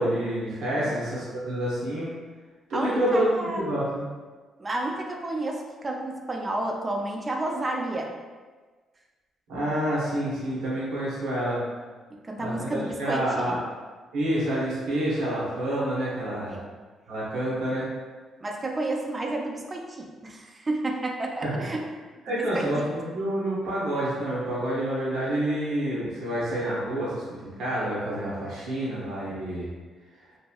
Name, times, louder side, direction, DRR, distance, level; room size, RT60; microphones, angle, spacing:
voice 1, 0.0-2.1 2.7-4.1 9.5-11.6 12.4-13.6 14.1-16.6 17.1-17.9 21.4-21.7 22.3-29.7, right 1 dB, 85° right, -8 dB, 0.8 m, -28 dB
voice 2, 2.7-3.7 4.6-8.1 12.1-13.6 16.5-16.6 18.4-21.9 22.3-22.9, right 2 dB, 30° right, 1 dB, 0.4 m, -31 dB
2.9 x 2.6 x 2.3 m, 1.4 s
cardioid pair, 90°, 0 cm